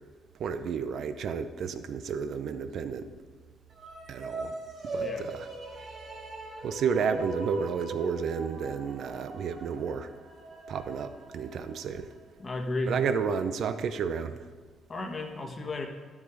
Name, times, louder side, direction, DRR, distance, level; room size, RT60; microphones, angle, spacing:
voice 1, 0.4-3.1 4.1-4.6 4.9-5.5 6.6-10.1 10.7-12.1 12.9-14.4, right 6 dB, 65° right, 10 dB, 0.7 m, -31 dB
sound 1, 3.7-12.2, right 2 dB, 50° right, 3.4 m, -40 dB
voice 2, 12.4-13.0 14.9-15.9, left 2 dB, 35° left, 3 dB, 1.5 m, -33 dB
12.5 x 7.3 x 5.1 m, 1.5 s
cardioid pair, 90°, 0 cm